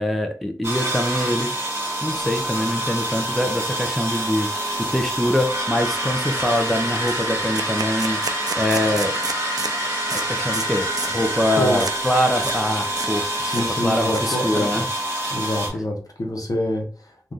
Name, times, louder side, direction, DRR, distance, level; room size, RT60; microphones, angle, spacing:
voice 1, 0.0-1.6 2.0-9.1 10.1-13.2 13.8-14.9, left 1 dB, ahead, 4 dB, 0.5 m, -24 dB
sound 1, 0.6-15.7, right 1 dB, 35° right, 1.6 m, -26 dB
sound 2, 2.1-14.3, right 1 dB, 15° left, 1.0 m, -42 dB
sound 3, 5.7-5.8 6.1-6.3 6.6-6.7 7.1-9.8 10.1-10.3 10.5-10.7 11.0-11.2 11.8-12.0 12.3-12.6 12.9-13.1 13.4-14.6, right 4 dB, 65° right, 0.3 m, -32 dB
voice 2, 13.4-14.8 15.3-17.3, left 1 dB, 55° left, 2 dB, 0.8 m, -26 dB
3.4 x 2.4 x 2.6 m, 0.42 s
wide cardioid pair, 55°, 7 cm